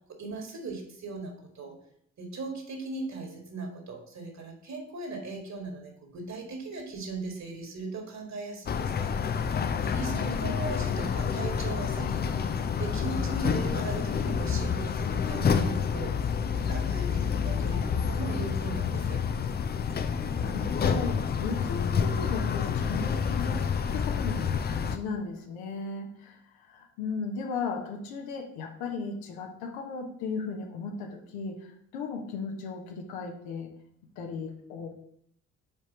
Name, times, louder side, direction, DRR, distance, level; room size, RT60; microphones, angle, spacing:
voice 1, 0.1-1.8 2.2-9.2 9.8-16.2 16.5-19.2, right 3 dB, 40° right, 2 dB, 1.9 m, -38 dB
sound 1, 8.7-25.0, left 6 dB, 25° left, 0.5 m, -28 dB
voice 2, 10.1-10.6 20.1-33.7 34.2-34.9, left 4 dB, 65° left, 3 dB, 1.1 m, -36 dB
5.6 x 4.4 x 6.0 m, 0.69 s
figure-of-eight pair, 45°, 40 cm